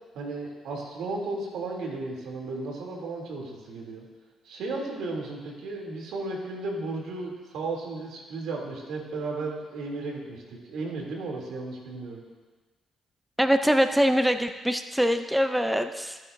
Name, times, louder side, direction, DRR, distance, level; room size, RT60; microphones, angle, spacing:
voice 1, 0.1-4.0 4.4-12.2, right 3 dB, 80° right, -1 dB, 3.0 m, -34 dB
voice 2, 13.4-16.2, equal, 5° right, 8 dB, 0.6 m, -23 dB
24.0 x 8.4 x 2.7 m, 1.3 s
cardioid pair, 90°, 0 cm